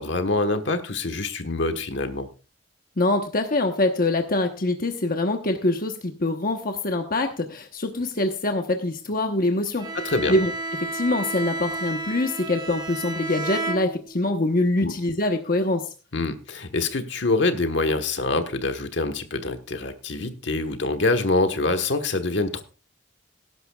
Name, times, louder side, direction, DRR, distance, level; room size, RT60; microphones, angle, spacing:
voice 1, 0.0-2.3 9.9-10.3 14.8-14.9 16.1-22.6, left 2 dB, 65° left, 8 dB, 1.3 m, -25 dB
voice 2, 3.0-9.9 10.3-10.5 10.8-15.9, left 2 dB, 50° left, 4 dB, 1.1 m, -24 dB
Bowed string instrument, 9.8-14.4, right 2 dB, 25° right, 2.0 m, -32 dB
18.0 x 11.0 x 2.4 m, 0.35 s
head